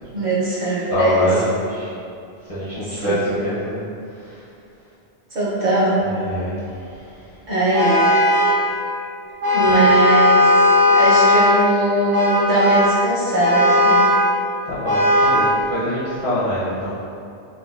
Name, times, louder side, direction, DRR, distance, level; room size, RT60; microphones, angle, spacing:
voice 1, 0.1-1.4 2.8-3.1 5.3-6.0 7.5-8.1 9.5-10.5 10.8-14.0, right 1 dB, 50° right, -10 dB, 0.7 m, -20 dB
voice 2, 0.9-1.9 2.5-3.9 4.2-4.3 6.0-6.5 14.7-16.9, left 1 dB, 40° left, -12 dB, 0.5 m, -24 dB
Vehicle horn car horn honking, 7.7-8.6 9.4-11.6 12.1-13.0 13.4-14.2 14.9-15.5, left 1 dB, 70° right, 1.0 m, -16 dB
3.7 x 2.2 x 2.3 m, 2.5 s
omnidirectional pair, 1.1 m